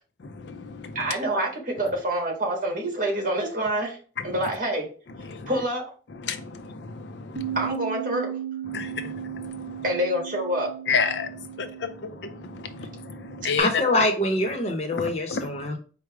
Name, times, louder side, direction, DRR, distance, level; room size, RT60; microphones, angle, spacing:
voice 1, 0.2-1.1 1.8-1.9 4.2-4.4 5.1-5.6 6.1-7.7 8.6-9.7 10.9-13.8 14.9-15.7, left 5 dB, 80° left, 0.5 m, -32 dB
voice 2, 0.9-4.0 4.2-4.8 5.5-5.8 7.5-8.3 9.8-10.7, right 1 dB, 50° right, 1.4 m, -26 dB
Bass guitar, 7.4-13.6, right 11 dB, 75° right, 0.7 m, -36 dB
voice 3, 13.6-15.8, left 1 dB, 35° left, 0.8 m, -24 dB
4.7 x 2.1 x 4.7 m
head